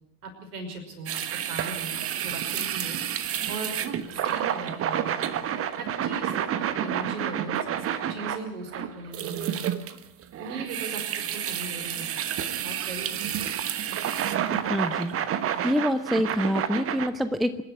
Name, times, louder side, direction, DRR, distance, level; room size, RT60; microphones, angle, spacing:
voice 1, 0.2-3.0 3.5-3.7 4.1-5.1 5.8-9.6 10.4-11.0 11.3-12.1 12.5-13.2, right 2 dB, 65° right, 4 dB, 5.7 m, -39 dB
sound 1, 1.1-17.1, right 9 dB, 30° right, 1.3 m, -30 dB
voice 2, 14.6-15.1 15.6-17.6, equal, ahead, 12 dB, 0.7 m, -26 dB
26.0 x 11.0 x 9.8 m, 0.85 s
figure-of-eight pair, 80°, 48 cm